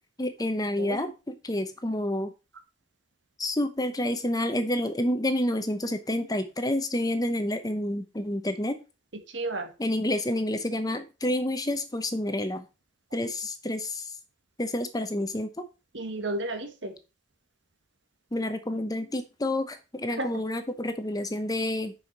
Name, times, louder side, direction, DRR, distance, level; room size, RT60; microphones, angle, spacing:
voice 1, 0.2-2.3 3.4-8.8 9.8-12.6 13.1-14.2 14.6-15.5 18.3-21.9, left 1 dB, 20° left, 8 dB, 0.9 m, -29 dB
voice 2, 9.1-9.7 15.9-17.0 20.1-20.3, right 2 dB, 75° right, 7 dB, 1.6 m, -33 dB
6.9 x 5.7 x 4.6 m, 0.29 s
head